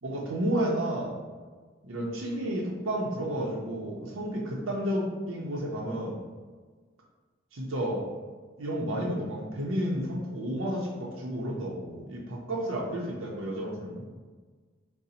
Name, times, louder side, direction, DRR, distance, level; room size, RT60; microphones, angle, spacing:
voice 1, 0.0-1.1 1.8-6.2 7.5-8.1 8.6-14.0, right 1 dB, 80° right, -2 dB, 0.6 m, -31 dB
3.8 x 2.0 x 4.2 m, 1.4 s
head